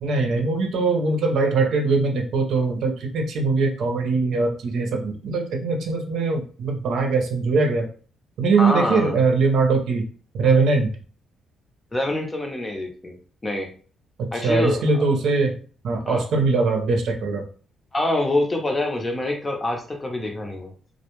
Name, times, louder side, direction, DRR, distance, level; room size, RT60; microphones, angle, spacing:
voice 1, 0.0-7.9 8.4-10.0 10.3-10.9 14.2-15.6 15.8-17.4, right 3 dB, 70° right, 2 dB, 0.6 m, -21 dB
voice 2, 8.6-9.2 11.9-13.2 13.4-13.7 14.3-15.0 16.1-16.2 17.9-20.7, left 1 dB, 20° left, 3 dB, 0.6 m, -25 dB
2.2 x 2.1 x 3.0 m, 0.41 s
cardioid pair, 90°, 0 cm